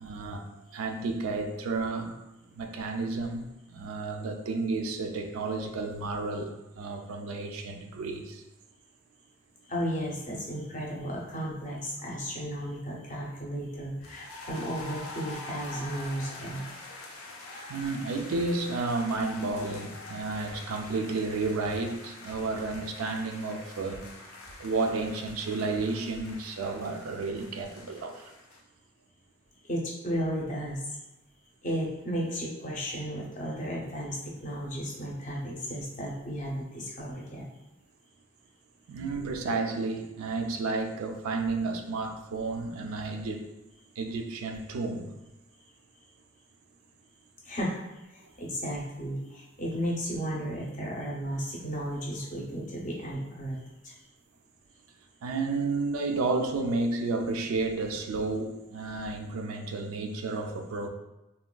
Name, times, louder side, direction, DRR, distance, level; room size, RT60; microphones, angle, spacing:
voice 1, 0.0-2.2 2.5-8.4 17.7-24.1 24.6-28.3 38.9-43.5 44.0-45.1 55.2-60.9, right 3 dB, 85° right, 5 dB, 0.3 m, -32 dB
voice 2, 9.7-16.7 29.6-31.0 31.6-37.5 47.4-47.8 48.1-53.6 53.8-53.9, equal, 35° left, -3 dB, 0.6 m, -34 dB
sound 1, 14.0-28.6, left 2 dB, 85° left, 0.5 m, -45 dB
3.4 x 2.2 x 2.2 m, 1.0 s
head